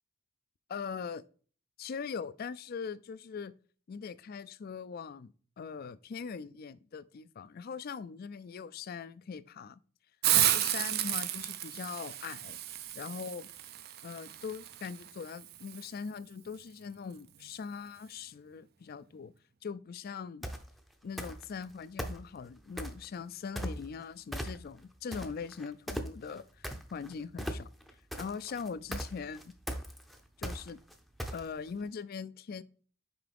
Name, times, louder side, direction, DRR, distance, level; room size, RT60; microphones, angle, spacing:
voice 1, 0.7-1.2 1.8-3.5 3.9-9.8 10.3-12.6 12.9-13.5 14.0-19.3 19.6-20.5 21.0-27.7 28.2-29.5 30.4-30.8 31.3-32.6, left 6 dB, 45° left, 0.3 m, -41 dB
Hiss, 10.2-15.9, right 13 dB, 50° right, 0.4 m, -32 dB
sound 1, 20.4-20.7 21.2-21.6 22.0-23.1 23.6-24.0 24.3-24.8 25.1-31.7, equal, ahead, 0.6 m, -38 dB
6.0 x 4.6 x 3.4 m
head